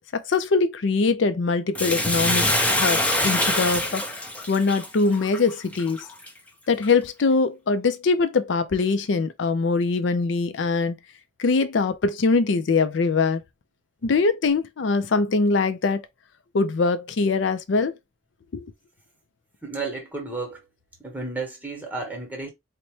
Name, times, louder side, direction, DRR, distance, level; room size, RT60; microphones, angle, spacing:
voice 1, 0.1-6.0 6.7-11.0 11.4-13.4 14.0-16.0 16.5-18.0 18.5-18.7, left 4 dB, 80° left, 0.5 m, -23 dB
Bathtub (filling or washing), 1.7-6.3 6.8-6.9, left 1 dB, 5° left, 0.6 m, -24 dB
voice 2, 19.6-20.6 21.0-22.5, right 3 dB, 10° right, 1.0 m, -32 dB
4.1 x 2.1 x 3.0 m
head